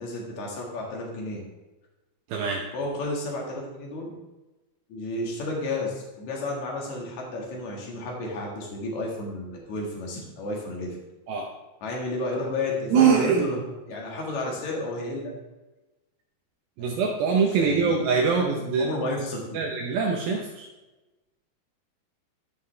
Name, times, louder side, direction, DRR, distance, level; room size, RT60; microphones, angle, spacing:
voice 1, 0.0-1.4 2.7-4.1 4.9-11.0 11.8-13.6 13.9-15.4 16.8-17.0 17.5-18.0 18.3-18.5 18.8-19.6, left 2 dB, 50° left, -2 dB, 2.5 m, -32 dB
voice 2, 2.3-2.7 11.3-11.5 12.9-13.5 16.8-18.9 19.5-20.7, right 5 dB, 75° right, 0 dB, 2.2 m, -23 dB
14.0 x 5.4 x 3.3 m, 1.1 s
omnidirectional pair, 5.3 m